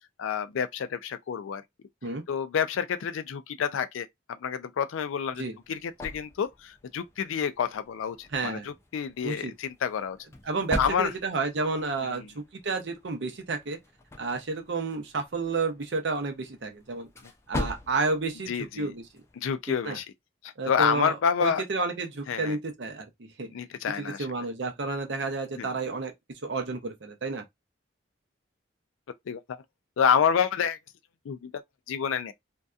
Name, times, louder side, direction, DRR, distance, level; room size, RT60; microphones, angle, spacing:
voice 1, 0.2-1.6 2.3-4.1 4.4-10.2 10.8-11.1 12.0-12.3 17.5-17.7 18.5-18.9 19.4-20.1 20.4-21.6 22.3-22.6 23.5-24.3 25.6-25.7 29.3-29.6 30.0-30.8 31.3-31.6 31.9-32.3, left 7 dB, 85° left, 0.4 m, -28 dB
sound 1, 5.2-19.6, left 1 dB, 15° left, 0.3 m, -42 dB
voice 2, 8.3-8.7 9.2-9.5 10.4-13.8 14.2-17.1 17.5-19.0 19.8-20.0 20.6-21.1 21.4-23.1 23.4-23.5 24.0-26.1 26.4-27.4, right 3 dB, 65° right, 0.6 m, -31 dB
2.7 x 2.2 x 2.3 m
head